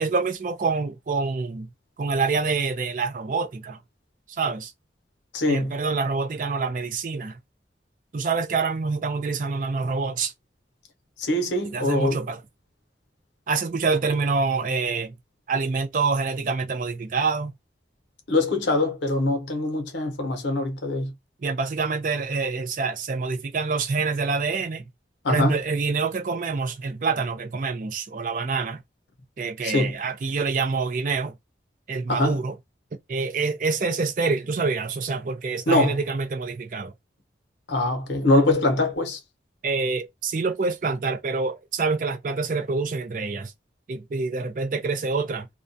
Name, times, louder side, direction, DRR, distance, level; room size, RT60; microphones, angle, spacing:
voice 1, 0.0-1.7 2.0-3.8 4.3-4.7 5.5-7.4 8.1-10.3 11.7-12.4 13.5-15.2 15.5-17.5 21.4-24.8 25.3-28.8 29.4-31.4 31.9-32.6 33.1-36.9 39.6-43.5 43.9-45.5, right 4 dB, 45° right, 0.4 m, -26 dB
voice 2, 5.3-5.8 11.2-12.2 18.3-21.1 25.2-25.6 29.6-29.9 32.1-32.4 35.7-36.0 37.7-39.2, left 2 dB, 85° left, 0.7 m, -23 dB
2.2 x 2.2 x 2.5 m
head